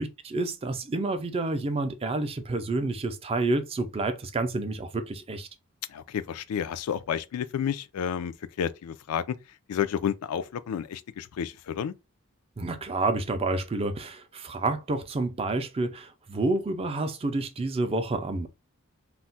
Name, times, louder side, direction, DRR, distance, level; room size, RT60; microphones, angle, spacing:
voice 1, 0.0-5.5 12.6-18.5, right 2 dB, 25° right, 0.4 m, -29 dB
voice 2, 5.9-9.4 9.7-11.9, left 8 dB, 90° left, 0.3 m, -31 dB
2.3 x 2.1 x 3.8 m
head